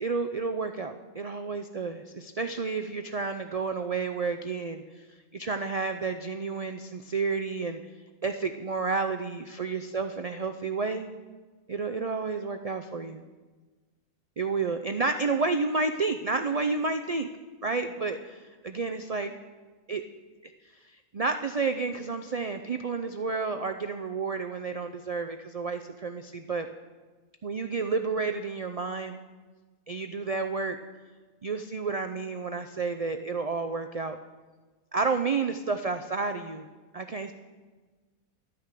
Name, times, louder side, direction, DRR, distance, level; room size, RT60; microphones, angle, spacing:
voice 1, 0.0-4.8 5.3-7.8 8.2-11.1 11.7-13.2 14.4-17.3 17.6-19.3 19.9-20.0 20.4-20.5 20.8-26.7 27.4-29.2 29.9-30.8 31.4-34.2 34.9-36.7 36.9-37.3, right 4 dB, 70° right, 7 dB, 0.3 m, -30 dB
12.5 x 9.3 x 6.7 m, 1.3 s
omnidirectional pair, 1.5 m